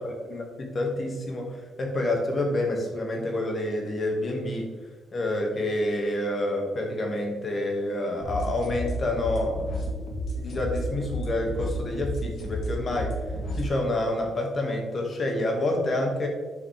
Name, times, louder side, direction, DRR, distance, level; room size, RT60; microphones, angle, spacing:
voice 1, 0.0-4.7 5.1-9.9 10.4-13.2 13.5-16.3, left 1 dB, 40° left, 1 dB, 2.0 m, -28 dB
sound 1, 8.2-13.7, equal, 60° left, 2.2 m, -32 dB
9.3 x 6.0 x 3.5 m, 1.4 s
cardioid pair, 90°, 0 cm